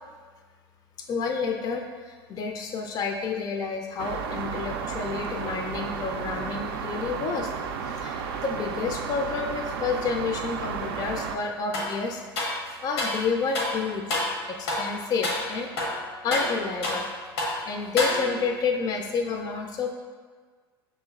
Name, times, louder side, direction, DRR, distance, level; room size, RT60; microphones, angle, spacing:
voice 1, 1.1-7.5 7.9-12.2 12.5-14.2 14.5-15.7 16.2-17.1 17.6-19.9, left 5 dB, 30° left, 3 dB, 0.3 m, -30 dB
sound 1, 4.0-11.4, right 6 dB, 70° right, 0.4 m, -33 dB
sound 2, 11.7-12.0 12.4-13.2 13.5-13.8 14.1-14.4 14.7-14.9 15.2-15.5 15.8-17.1 17.4-17.6 18.0-18.5, left 2 dB, 80° left, 0.8 m, -28 dB
5.3 x 3.1 x 2.3 m, 1.5 s
hypercardioid pair, 85°, 13 cm